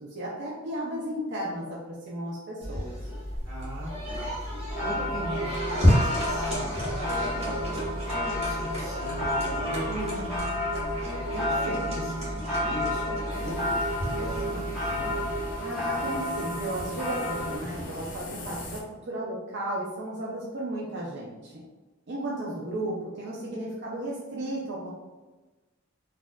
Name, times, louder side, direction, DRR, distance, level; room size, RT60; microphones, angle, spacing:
voice 1, 0.0-2.9 9.9-10.6 15.6-18.8 19.1-21.6 22.1-24.9, right 1 dB, 55° right, -5 dB, 0.5 m, -34 dB
sound 1, 2.6-15.5, equal, 30° right, 1.0 m, -31 dB
voice 2, 3.4-10.2 11.0-15.2, equal, 90° right, -6 dB, 1.3 m, -39 dB
sound 2, 4.7-17.6, equal, ahead, 1.0 m, -31 dB
sound 3, 13.3-18.8, left 1 dB, 40° left, 0.5 m, -40 dB
4.1 x 2.4 x 2.2 m, 1.2 s
head